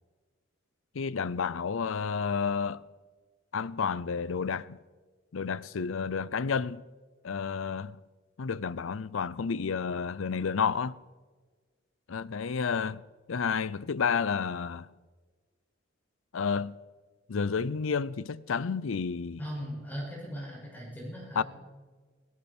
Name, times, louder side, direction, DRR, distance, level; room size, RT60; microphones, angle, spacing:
voice 1, 0.9-2.8 3.5-4.8 5.3-6.8 7.2-8.0 8.4-11.0 12.1-13.0 13.3-14.9 16.3-16.8 17.3-19.4 21.4-21.5, left 5 dB, 80° left, 0.5 m, -30 dB
voice 2, 19.4-21.4, equal, 10° left, 5.8 m, -38 dB
18.0 x 17.5 x 4.4 m
head